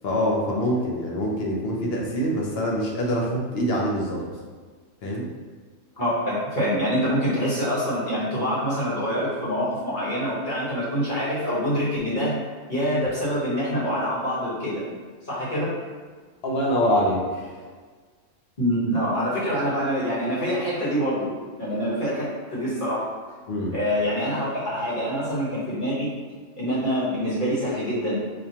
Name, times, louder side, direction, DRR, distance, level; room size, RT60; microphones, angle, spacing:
voice 1, 0.0-4.2 5.0-5.3 16.4-17.6 23.5-23.7, equal, 55° left, -2 dB, 0.9 m, -25 dB
voice 2, 6.0-12.4 12.7-14.8 15.3-15.7 18.6-21.3 21.6-23.1 23.7-26.1 26.6-28.2, equal, 40° left, -8 dB, 1.3 m, -25 dB
5.0 x 2.3 x 2.8 m, 1.5 s
omnidirectional pair, 1.3 m